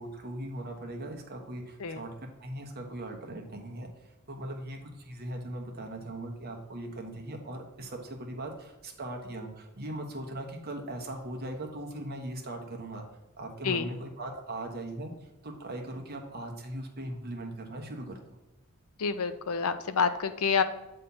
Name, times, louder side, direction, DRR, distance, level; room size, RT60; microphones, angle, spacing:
voice 1, 0.0-2.1 2.4-13.0 13.4-15.1 15.4-18.2, right 1 dB, 45° right, 2 dB, 1.1 m, -39 dB
voice 2, 19.0-20.6, left 5 dB, 90° left, 10 dB, 0.6 m, -28 dB
8.2 x 3.3 x 5.6 m, 1.0 s
head